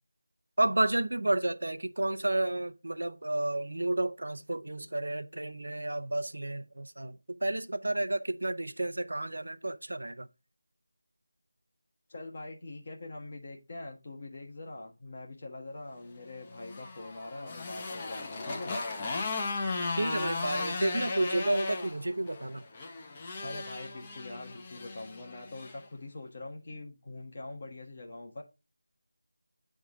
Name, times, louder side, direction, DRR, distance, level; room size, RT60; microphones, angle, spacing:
voice 1, 0.6-10.3 20.0-22.6, right 1 dB, 75° right, 0.6 m, -31 dB
voice 2, 12.1-18.8 23.4-28.4, left 2 dB, 40° left, 1.3 m, -43 dB
Motorcycle, 16.4-25.8, left 3 dB, 20° left, 0.8 m, -36 dB
9.4 x 3.7 x 3.6 m
figure-of-eight pair, 170°, 0 cm